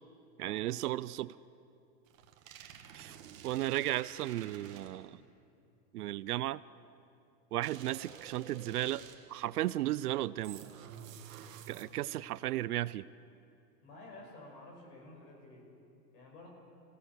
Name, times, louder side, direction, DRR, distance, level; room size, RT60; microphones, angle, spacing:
voice 1, 0.4-1.3 2.9-3.2 3.4-5.2 5.9-6.6 7.5-9.0 9.3-10.6 11.7-13.1, right 15 dB, 70° right, 19 dB, 0.5 m, -34 dB
sound 1, 2.1-5.2 7.6-9.4 10.4-12.2, right 8 dB, 55° right, 1.7 m, -51 dB
voice 2, 13.8-15.7 16.1-16.5, left 2 dB, 35° left, 0 dB, 5.4 m, -52 dB
27.5 x 17.0 x 6.7 m, 2.6 s
supercardioid pair, 175°, 48 cm